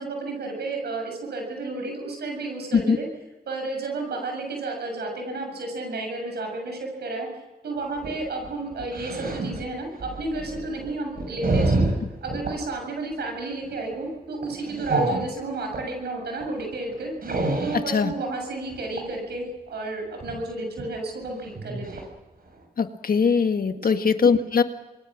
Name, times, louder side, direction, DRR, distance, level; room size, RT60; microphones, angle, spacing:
voice 1, 0.0-3.1 3.5-7.3 7.6-11.9 12.2-17.1 17.6-22.0 23.8-24.0, right 2 dB, 90° right, 2 dB, 7.2 m, -32 dB
sound 1, 7.8-12.6 13.0-13.3 13.6-13.9 14.4-15.9 16.4-16.5 16.7-17.9 18.7-19.1 20.2-20.4 20.8-20.9 21.2-21.3 21.5-22.0 22.5-22.6, right 2 dB, 65° right, 6.6 m, -28 dB
voice 2, 22.8-24.6, left 5 dB, 60° left, 8 dB, 1.7 m, -21 dB
28.0 x 21.5 x 6.2 m, 1.1 s
cardioid pair, 55°, 17 cm